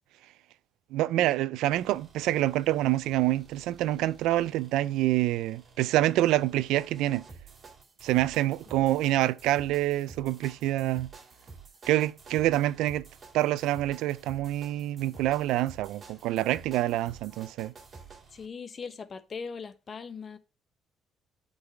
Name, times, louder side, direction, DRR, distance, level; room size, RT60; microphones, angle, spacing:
voice 1, 0.9-7.3 8.0-11.1 11.8-13.1 13.3-17.7, right 15 dB, 90° right, 0.3 m, -26 dB
sound 1, 1.7-18.5, right 4 dB, 35° right, 2.0 m, -51 dB
voice 2, 18.3-20.4, left 5 dB, 35° left, 0.8 m, -40 dB
8.6 x 4.0 x 4.4 m
cardioid pair, 115°, 0 cm